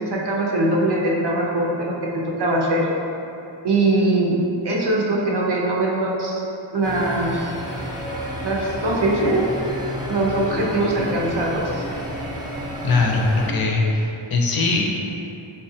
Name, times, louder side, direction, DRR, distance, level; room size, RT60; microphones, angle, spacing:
voice 1, 0.0-2.8 3.6-4.4 4.6-6.4 6.7-7.5 8.4-9.4 10.1-11.9, right 2 dB, 55° right, -3 dB, 0.7 m, -21 dB
sound 1, 6.8-13.5, equal, 10° right, 0.6 m, -31 dB
voice 2, 12.8-14.8, left 3 dB, 50° left, -1 dB, 0.5 m, -20 dB
3.6 x 3.1 x 2.7 m, 2.8 s
wide cardioid pair, 85°, 47 cm